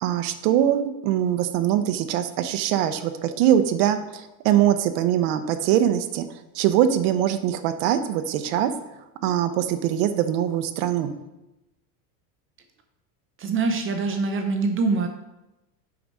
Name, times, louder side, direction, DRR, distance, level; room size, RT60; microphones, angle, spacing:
voice 1, 0.0-6.3 6.5-8.7 9.2-11.2, right 11 dB, 70° right, 9 dB, 0.7 m, -22 dB
voice 2, 13.4-15.1, right 4 dB, 25° right, 5 dB, 0.6 m, -24 dB
6.0 x 5.0 x 5.3 m, 0.98 s
supercardioid pair, 135°, 48 cm